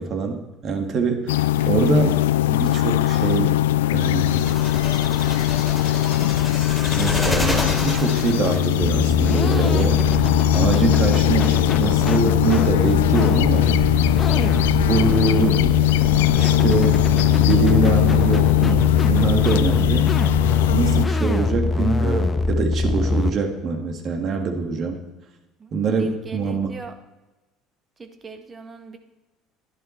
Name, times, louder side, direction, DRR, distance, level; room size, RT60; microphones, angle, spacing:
voice 1, 0.0-2.2 2.5-3.6 3.9-4.5 6.9-14.1 14.7-16.0 16.3-20.1 20.7-25.0 25.7-26.7, right 4 dB, 50° right, 5 dB, 1.9 m, -24 dB
sound 1, 1.3-21.1, left 16 dB, 80° left, 0.4 m, -20 dB
voice 2, 1.6-2.1 8.7-8.9 14.6-15.1 19.9-20.5 21.3-21.8 25.6-27.0 28.0-29.0, right 4 dB, 30° right, 7 dB, 1.7 m, -41 dB
sound 2, 4.2-8.7, left 1 dB, ahead, 3.2 m, -29 dB
sound 3, 8.8-23.3, left 3 dB, 25° left, 1.0 m, -22 dB
12.0 x 11.0 x 4.4 m, 1.1 s
hypercardioid pair, 65°, 0 cm